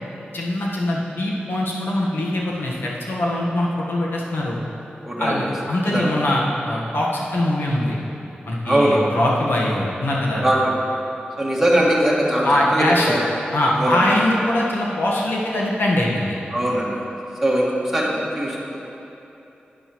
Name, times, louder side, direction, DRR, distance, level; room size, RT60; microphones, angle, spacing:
voice 1, 0.3-4.6 5.2-8.0 8.5-10.5 12.4-13.2 13.5-16.4, left 1 dB, 85° left, -4 dB, 1.3 m, -22 dB
voice 2, 5.0-5.4 5.8-6.2 8.7-9.1 10.4-10.7 11.4-12.5 12.7-13.3 13.8-14.0 16.5-17.0 17.4-18.8, right 1 dB, 5° right, -6 dB, 1.8 m, -20 dB
11.0 x 9.2 x 3.0 m, 3.0 s
wide cardioid pair, 110°, 4 cm